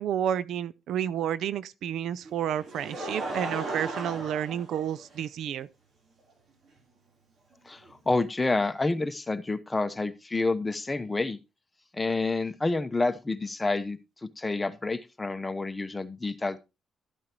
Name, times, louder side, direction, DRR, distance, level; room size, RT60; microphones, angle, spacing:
voice 1, 0.0-5.7, right 9 dB, 75° right, 0.4 m, -30 dB
Laughter, 2.2-5.5 6.3-6.4 7.9-8.0, right 2 dB, 60° right, 3.5 m, -36 dB
voice 2, 7.6-11.4 11.9-16.6, left 3 dB, 20° left, 0.9 m, -29 dB
12.5 x 8.7 x 3.0 m
cardioid pair, 90°, 0 cm